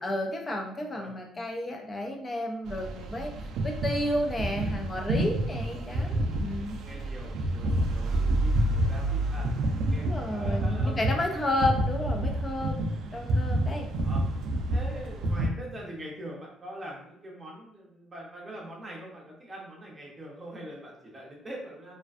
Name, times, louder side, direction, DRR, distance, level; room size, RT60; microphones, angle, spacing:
voice 1, 0.0-6.8 9.9-13.9, left 1 dB, 20° left, 2 dB, 0.4 m, -32 dB
sound 1, 2.7-15.5, right 1 dB, 70° right, 0.3 m, -29 dB
voice 2, 5.8-6.2 6.8-9.5 9.9-11.4 14.0-14.2 14.7-22.0, right 1 dB, 20° right, -2 dB, 0.7 m, -43 dB
2.4 x 2.2 x 2.4 m, 0.73 s
cardioid pair, 135°, 0 cm